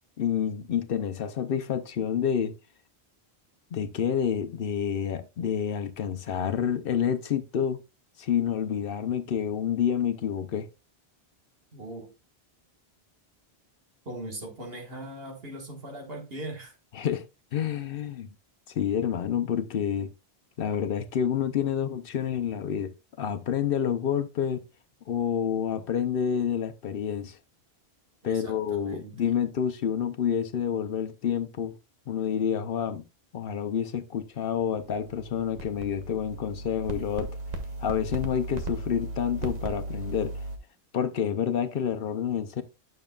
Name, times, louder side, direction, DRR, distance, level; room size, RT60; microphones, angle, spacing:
voice 1, 0.2-2.5 3.7-7.8 8.2-10.7 16.9-17.2 17.5-18.3 18.7-20.1 20.6-24.6 25.1-27.4 28.2-31.8 32.1-33.0 33.3-37.3 37.8-40.4 40.9-42.6, left 8 dB, 65° left, 0.8 m, -28 dB
voice 2, 11.7-12.1 14.1-16.8 28.2-29.2, right 1 dB, 65° right, 1.9 m, -40 dB
sound 1, 34.6-40.6, right 2 dB, 40° right, 1.1 m, -36 dB
8.9 x 6.5 x 2.4 m
omnidirectional pair, 1.1 m